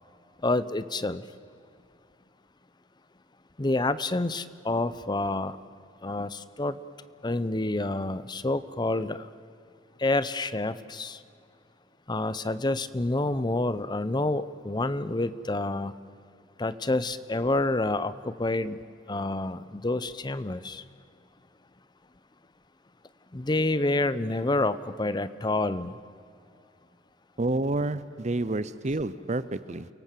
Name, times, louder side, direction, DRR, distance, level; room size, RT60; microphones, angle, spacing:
voice 1, 0.4-1.2 3.6-5.6 6.0-6.8 7.2-9.2 10.0-11.2 12.1-15.9 16.6-18.8 19.1-20.8 23.3-25.9, left 2 dB, 25° left, 15 dB, 0.7 m, -28 dB
voice 2, 27.4-29.9, right 2 dB, 40° right, 16 dB, 0.7 m, -29 dB
29.5 x 18.0 x 7.6 m, 2.5 s
head